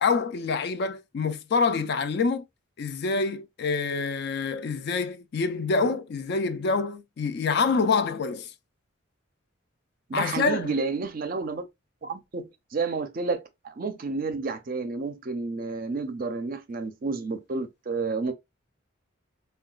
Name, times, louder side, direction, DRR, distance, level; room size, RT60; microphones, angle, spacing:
voice 1, 0.0-2.4 2.8-8.5 10.1-10.7, left 4 dB, 50° left, 0.3 m, -26 dB
voice 2, 10.1-11.6 12.0-18.3, right 4 dB, 45° right, 0.4 m, -30 dB
3.8 x 2.2 x 2.3 m
head